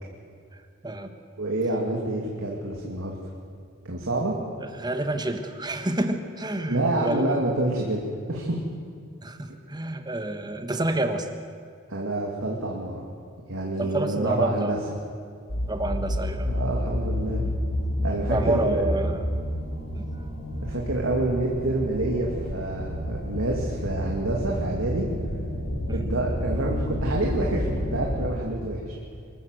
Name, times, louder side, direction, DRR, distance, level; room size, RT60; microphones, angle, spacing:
voice 1, 1.4-3.2 3.8-4.3 6.7-8.6 11.9-13.0 13.5-14.8 16.5-17.4 18.0-19.0 20.6-25.1 25.9-29.0, right 2 dB, 90° right, -1 dB, 2.5 m, -27 dB
voice 2, 4.6-7.4 9.2-11.3 13.8-14.8 15.7-16.5 17.4-17.5 18.3-19.3 19.9-20.1 25.9-26.0, right 1 dB, 20° right, 7 dB, 1.4 m, -28 dB
sound 1, 15.5-28.3, equal, 80° left, 3.3 m, -30 dB
24.5 x 14.0 x 7.9 m, 2.3 s
head